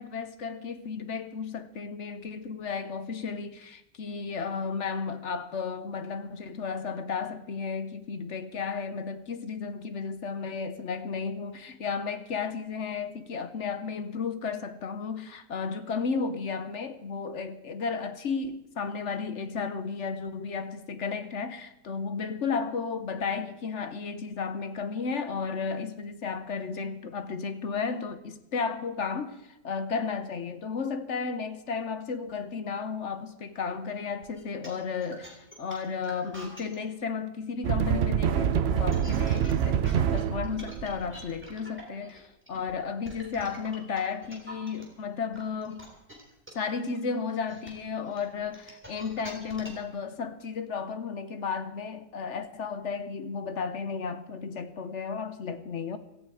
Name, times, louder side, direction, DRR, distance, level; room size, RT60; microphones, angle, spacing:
voice 1, 0.0-29.4 29.6-45.9 46.5-56.0, left 5 dB, 50° left, 1.0 m, -33 dB
sound 1, 34.2-36.8 38.6-44.8 45.3-49.9, equal, 5° right, 3.5 m, -46 dB
sound 2, 37.6-41.3, right 9 dB, 65° right, 0.6 m, -26 dB
16.5 x 14.5 x 4.8 m
omnidirectional pair, 1.8 m